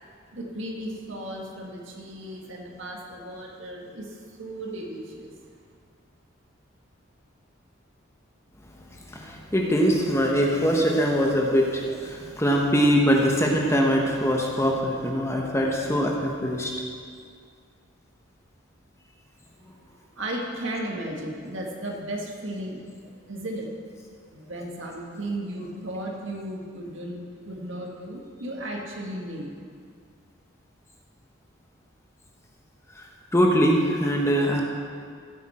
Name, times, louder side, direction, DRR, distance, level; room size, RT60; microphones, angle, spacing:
voice 1, 0.3-5.3 20.2-22.8 23.3-23.7 24.3-29.6, right 1 dB, 70° right, 0 dB, 1.8 m, -35 dB
voice 2, 9.1-16.7 33.0-33.1 33.3-34.6, equal, 15° left, 0 dB, 1.1 m, -22 dB
15.5 x 8.2 x 4.3 m, 2.1 s
head